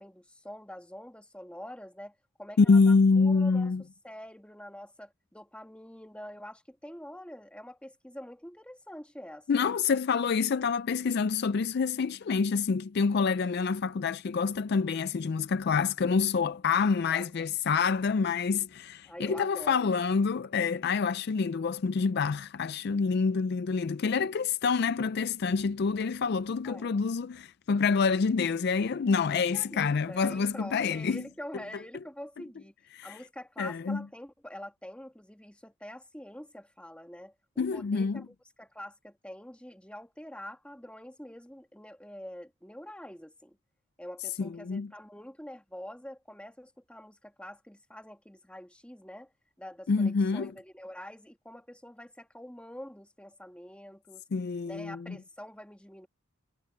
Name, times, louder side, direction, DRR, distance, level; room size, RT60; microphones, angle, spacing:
voice 1, 0.0-9.7 17.1-17.3 19.0-19.9 26.6-27.0 29.3-32.7 33.0-43.6 44.0-49.3 49.6-54.2 54.6-56.1, left 1 dB, 5° left, 1.7 m, -46 dB
voice 2, 2.6-3.8 9.5-31.2 32.9-33.2 33.6-34.0 37.6-38.2 44.4-44.9 49.9-50.5 54.3-55.2, left 5 dB, 50° left, 0.4 m, -27 dB
head